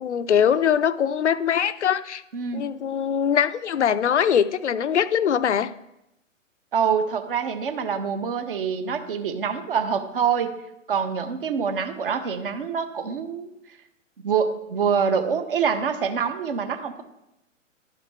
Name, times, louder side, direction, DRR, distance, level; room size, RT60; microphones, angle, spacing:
voice 1, 0.0-2.2 2.5-5.7, left 8 dB, 65° left, 14 dB, 0.5 m, -22 dB
voice 2, 2.3-2.7 6.7-10.5 10.9-13.5 14.2-17.0, right 6 dB, 45° right, 7 dB, 0.9 m, -25 dB
11.5 x 5.0 x 3.3 m, 0.87 s
figure-of-eight pair, 125°, 39 cm